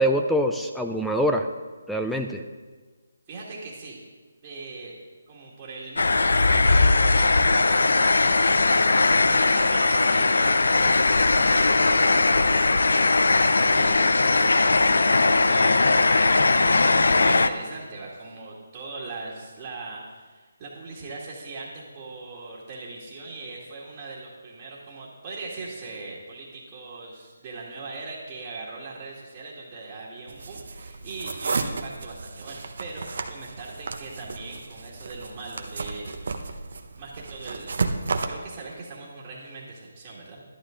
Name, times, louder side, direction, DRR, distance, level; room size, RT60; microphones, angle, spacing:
voice 1, 0.0-1.5 1.9-2.4, equal, ahead, 3 dB, 0.4 m, -24 dB
voice 2, 3.3-4.0 4.4-5.0 5.3-8.1 8.4-12.8 13.6-14.9 15.1-16.0 16.9-36.6 36.9-37.7 38.2-40.4, right 3 dB, 25° right, -7 dB, 2.0 m, -40 dB
sound 1, 6.0-17.5, left 3 dB, 75° left, 0.6 m, -19 dB
sound 2, 30.3-38.3, right 4 dB, 60° right, 0.9 m, -33 dB
12.0 x 11.5 x 3.8 m, 1.4 s
figure-of-eight pair, 160°, 0 cm